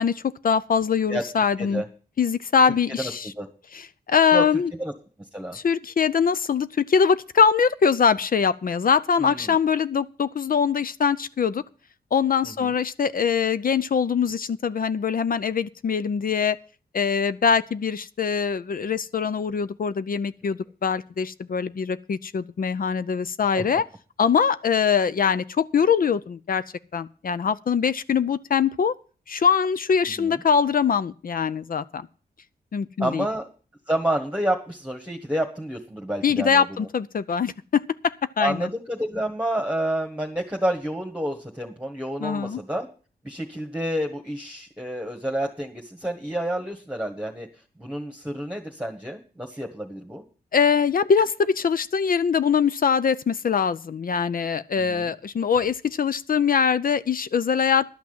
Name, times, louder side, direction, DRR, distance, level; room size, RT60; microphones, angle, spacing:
voice 1, 0.0-1.8 2.2-3.3 3.7-4.7 5.5-11.6 12.1-16.6 16.9-23.8 24.2-26.6 26.9-28.9 29.3-32.1 32.7-33.3 36.2-38.7 42.2-42.6 50.5-57.9, left 6 dB, 60° left, 0.6 m, -23 dB
voice 2, 2.7-3.1 3.4-3.5 4.3-4.4 4.8-4.9 5.3-5.6 9.2-9.5 12.4-12.7 23.5-23.6 30.2-30.4 33.0-33.5 33.9-36.6 38.4-42.9 43.2-47.5 47.8-50.2 54.7-55.1, right 1 dB, 5° right, 1.6 m, -29 dB
11.5 x 6.0 x 8.9 m
cardioid pair, 75°, 17 cm